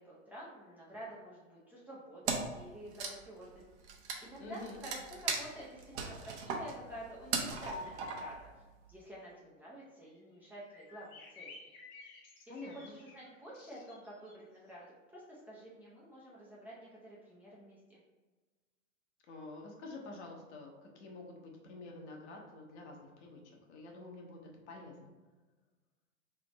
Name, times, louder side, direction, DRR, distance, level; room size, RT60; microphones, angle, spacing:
voice 1, 0.0-3.6 4.2-8.5 8.9-11.6 12.5-18.0, right 1 dB, 5° right, -7 dB, 0.5 m, -50 dB
Wood, 2.3-2.6 2.9-8.5, right 4 dB, 60° right, 0.8 m, -38 dB
voice 2, 4.4-4.8 12.5-13.0 19.3-24.4 24.7-25.1, left 3 dB, 60° left, 0 dB, 1.1 m, -48 dB
sound 1, 10.0-10.1 10.3-10.4 10.7-14.3, left 3 dB, 30° left, 0.7 m, -54 dB
3.4 x 2.5 x 4.0 m, 1.3 s
hypercardioid pair, 125°, 39 cm